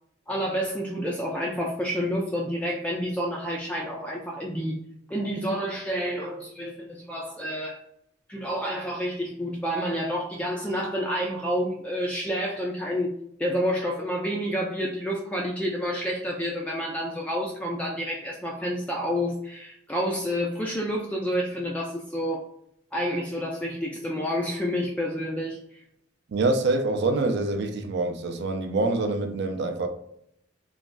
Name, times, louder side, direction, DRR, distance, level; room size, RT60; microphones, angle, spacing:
voice 1, 0.3-4.8 5.1-7.8 8.3-13.1 13.4-22.4 22.9-25.8, equal, 5° left, 0.3 m, -29 dB
voice 2, 26.3-29.9, right 2 dB, 60° right, 0.4 m, -25 dB
3.2 x 2.2 x 2.4 m
head